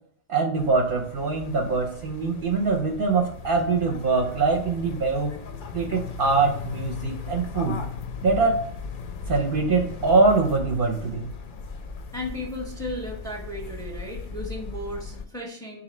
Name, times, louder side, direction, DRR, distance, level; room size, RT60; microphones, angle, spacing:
voice 1, 0.3-5.3 5.7-7.8 8.2-8.6 9.3-11.3, right 3 dB, 60° right, 1 dB, 0.7 m, -23 dB
sound 1, 0.6-15.2, left 5 dB, 60° left, 0.6 m, -37 dB
voice 2, 12.1-15.8, left 1 dB, 5° left, 1 dB, 0.7 m, -35 dB
3.9 x 2.7 x 4.2 m, 0.63 s
omnidirectional pair, 1.2 m